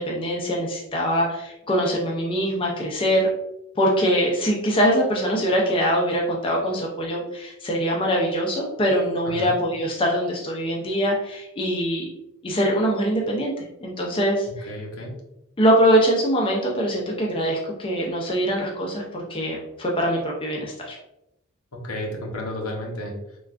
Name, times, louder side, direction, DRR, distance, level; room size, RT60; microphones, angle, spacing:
voice 1, 0.0-3.3 3.8-12.1 12.4-13.5 13.8-14.7 15.6-21.0, equal, 25° left, -1 dB, 0.4 m, -23 dB
voice 2, 9.2-9.6 14.5-15.2 21.8-23.4, left 1 dB, 80° left, -1 dB, 0.7 m, -32 dB
3.3 x 2.3 x 2.4 m, 0.85 s
head